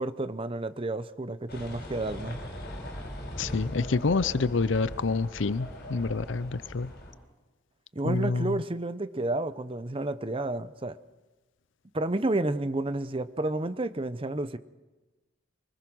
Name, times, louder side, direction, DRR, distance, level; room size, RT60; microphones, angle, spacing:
voice 1, 0.0-2.4 7.9-11.0 11.9-14.6, right 2 dB, 25° right, 13 dB, 0.7 m, -30 dB
sound 1, 1.5-7.1, left 1 dB, 50° left, 4.6 m, -40 dB
voice 2, 3.4-6.9 8.0-8.6, left 4 dB, 70° left, 17 dB, 0.6 m, -27 dB
24.0 x 20.0 x 6.2 m, 1.2 s
head